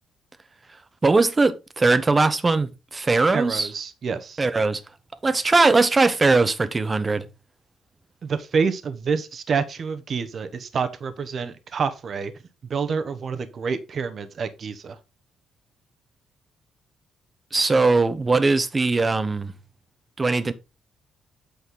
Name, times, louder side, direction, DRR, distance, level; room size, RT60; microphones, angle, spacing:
voice 1, 1.0-3.7 4.4-4.8 5.2-7.2 17.5-19.5 20.2-20.5, right 3 dB, 25° right, 1.0 m, -20 dB
voice 2, 3.3-4.4 8.2-12.3 12.7-15.0, right 5 dB, 50° right, 1.1 m, -27 dB
8.4 x 5.8 x 3.8 m
cardioid pair, 90°, 0 cm